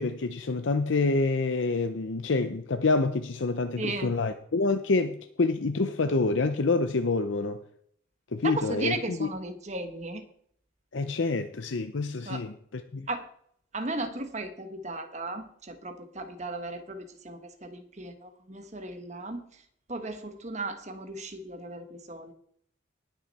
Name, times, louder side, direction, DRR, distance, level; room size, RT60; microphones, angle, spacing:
voice 1, 0.0-7.6 8.3-9.3 10.9-13.1, left 3 dB, 75° left, 0.6 m, -27 dB
voice 2, 3.8-4.1 8.4-10.2 12.3-12.4 13.1-13.3 13.7-19.4 19.9-22.3, right 2 dB, 35° right, 1.3 m, -36 dB
19.0 x 6.4 x 4.2 m
head